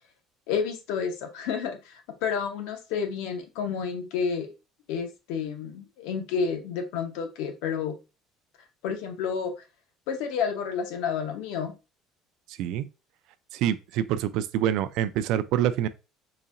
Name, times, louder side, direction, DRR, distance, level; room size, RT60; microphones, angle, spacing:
voice 1, 0.5-4.5 4.9-8.0 8.8-9.5 10.1-11.7, left 6 dB, 80° left, 0.8 m, -30 dB
voice 2, 12.5-12.9 13.5-15.9, right 11 dB, 60° right, 0.3 m, -26 dB
4.0 x 2.8 x 2.5 m
cardioid pair, 170°, 0 cm